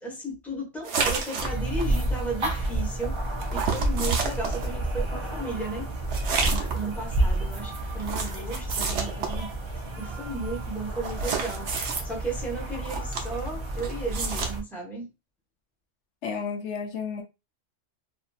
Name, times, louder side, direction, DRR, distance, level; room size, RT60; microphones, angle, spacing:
voice 1, 0.0-5.9 6.4-9.5 10.0-15.1, right 2 dB, ahead, 0.9 m, -35 dB
sound 1, 0.8-1.9 3.5-4.7 6.1-6.9 8.0-9.4 11.0-12.0 12.8-13.5 13.8-14.5, right 5 dB, 80° right, 1.0 m, -29 dB
sound 2, 1.4-14.6, right 1 dB, 45° right, 0.4 m, -30 dB
voice 2, 16.2-17.2, left 6 dB, 80° left, 0.9 m, -32 dB
2.8 x 2.5 x 2.3 m
omnidirectional pair, 1.2 m